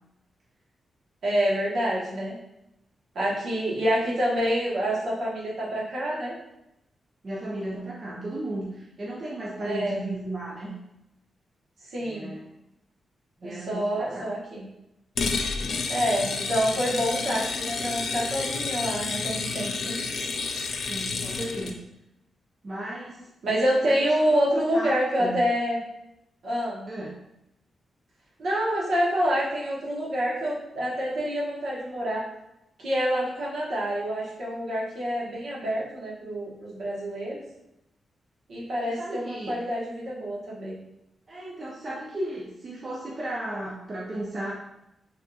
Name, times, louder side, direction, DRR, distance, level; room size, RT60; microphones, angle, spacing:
voice 1, 1.2-2.3 3.1-6.3 9.6-10.0 11.9-12.3 13.4-14.6 15.9-19.7 23.4-25.8 26.4-26.9 28.4-32.3 32.8-37.4 38.5-40.8, equal, 70° right, -5 dB, 1.0 m, -27 dB
voice 2, 7.2-10.8 12.0-12.5 13.4-14.3 15.6-15.9 20.8-21.8 22.6-23.3 23.8-24.0 24.3-25.4 26.9-27.2 38.9-39.6 41.3-44.5, right 1 dB, 35° right, -4 dB, 0.4 m, -35 dB
sound 1, 15.2-21.8, left 4 dB, 60° left, 0.3 m, -30 dB
3.5 x 2.6 x 2.2 m, 0.87 s
wide cardioid pair, 120°, 0 cm